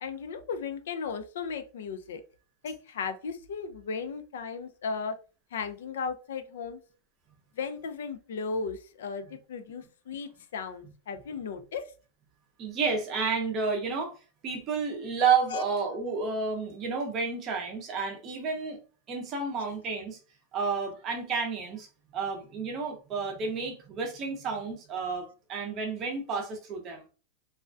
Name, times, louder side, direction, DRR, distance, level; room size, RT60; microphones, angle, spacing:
voice 1, 0.0-2.2 2.6-5.2 5.5-6.8 7.6-11.9 15.5-15.6, left 5 dB, 85° left, 0.4 m, -36 dB
voice 2, 12.6-14.1 14.4-18.8 19.1-20.2 20.5-21.9 22.1-27.1, right 5 dB, 25° right, 0.5 m, -31 dB
2.3 x 2.1 x 2.5 m
supercardioid pair, 175°, 0 cm